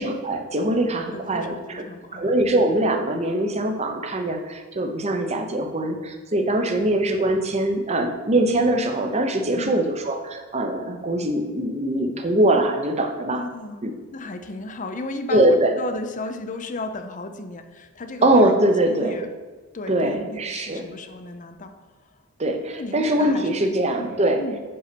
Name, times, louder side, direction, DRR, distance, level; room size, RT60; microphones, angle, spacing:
voice 1, 0.0-1.8 2.1-13.4 13.8-13.9 15.3-15.7 18.2-19.2 19.9-20.9 22.4-24.4, right 1 dB, 30° right, 5 dB, 0.8 m, -22 dB
voice 2, 1.1-2.3 6.7-6.8 9.6-9.9 13.3-13.9 14.1-18.6 18.9-19.3 19.7-21.7 22.0-22.1 22.8-24.6, left 2 dB, 35° left, 7 dB, 0.6 m, -35 dB
5.6 x 5.5 x 6.8 m, 1.3 s
head